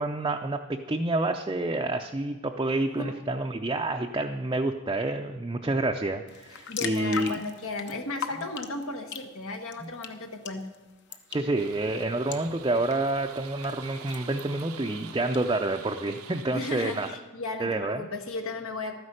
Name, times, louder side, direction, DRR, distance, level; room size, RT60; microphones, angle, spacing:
voice 1, 0.0-7.4 9.8-9.9 11.3-17.1 17.6-18.0, right 2 dB, 20° right, 3 dB, 0.5 m, -28 dB
sound 1, 6.3-15.4, left 7 dB, 50° left, 0.9 m, -42 dB
voice 2, 6.7-10.7 16.5-18.9, left 2 dB, 75° left, 4 dB, 1.3 m, -35 dB
sound 2, 11.6-17.1, right 7 dB, 80° right, 0.8 m, -46 dB
13.0 x 9.7 x 6.5 m, 1.2 s
head